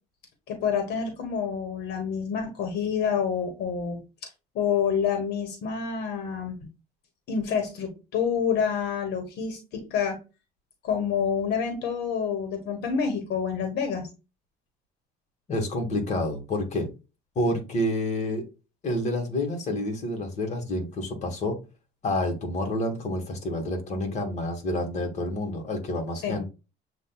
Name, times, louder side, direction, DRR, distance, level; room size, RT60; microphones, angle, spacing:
voice 1, 0.5-4.0 4.5-6.6 7.3-10.2 10.8-14.1 26.2-26.4, left 7 dB, 75° left, 1.3 m, -28 dB
voice 2, 15.5-16.9 17.3-18.4 18.8-21.6 22.0-26.5, left 1 dB, 45° left, 1.5 m, -28 dB
7.4 x 2.6 x 2.3 m
cardioid pair, 110°, 17 cm